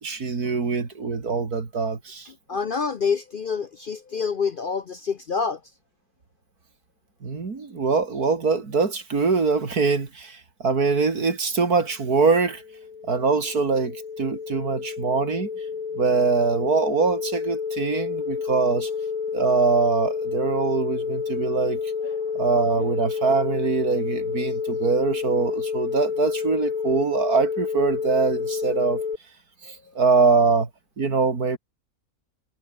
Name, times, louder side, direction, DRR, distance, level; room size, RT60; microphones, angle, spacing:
voice 1, 0.0-2.3 7.2-12.6 13.1-15.5 15.9-18.9 19.3-21.8 22.3-29.0 29.6-30.7 31.0-31.6, right 4 dB, 85° right, 3.3 m, -23 dB
voice 2, 2.5-5.6 22.0-22.2, left 5 dB, 50° left, 0.7 m, -27 dB
sound 1, 12.2-29.2, left 6 dB, 65° left, 2.2 m, -29 dB
omnidirectional pair, 1.6 m